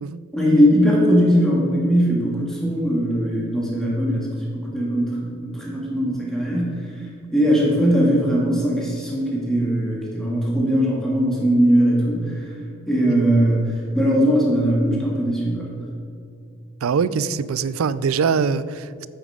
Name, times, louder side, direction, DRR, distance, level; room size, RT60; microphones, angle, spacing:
voice 1, 0.3-4.3 4.5-6.8 7.3-12.4 12.9-13.7 13.9-15.7, equal, 5° left, -5 dB, 1.8 m, -20 dB
voice 2, 16.8-19.1, right 6 dB, 85° right, 17 dB, 0.4 m, -23 dB
8.9 x 7.2 x 4.9 m, 2.4 s
head